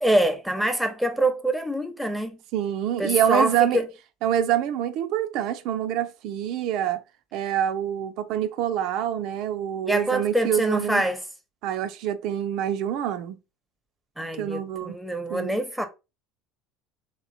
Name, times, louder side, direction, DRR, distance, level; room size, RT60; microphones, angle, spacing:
voice 1, 0.0-2.4 3.0-3.9 9.9-11.2 14.2-15.9, right 1 dB, ahead, 0.8 m, -25 dB
voice 2, 2.5-3.8 4.2-7.0 7.3-11.0 11.6-13.4 14.4-15.0 15.3-15.6, right 10 dB, 65° right, 0.4 m, -26 dB
3.1 x 2.9 x 2.7 m
hypercardioid pair, 75°, 0 cm